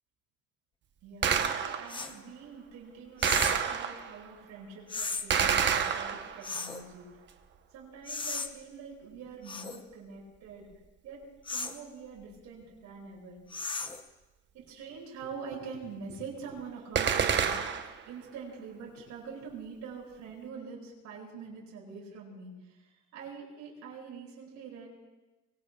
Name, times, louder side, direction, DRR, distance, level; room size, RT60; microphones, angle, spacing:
voice 1, 1.0-7.1 7.7-10.7 11.0-11.2 11.5-13.4 14.5-24.9, right 5 dB, 70° right, -3 dB, 7.1 m, -45 dB
Gunshot gunfire, 1.2-2.0 3.2-4.2 5.3-6.6 17.0-18.0, right 7 dB, 40° right, 1.0 m, -28 dB
sound 1, 1.9-2.2 3.2-3.7 4.9-5.3 6.4-6.8 8.1-8.5 9.5-9.8 11.5-11.8 13.5-14.1, left 4 dB, 15° left, 0.8 m, -36 dB
24.0 x 24.0 x 2.4 m, 1.1 s
cardioid pair, 155°, 30 cm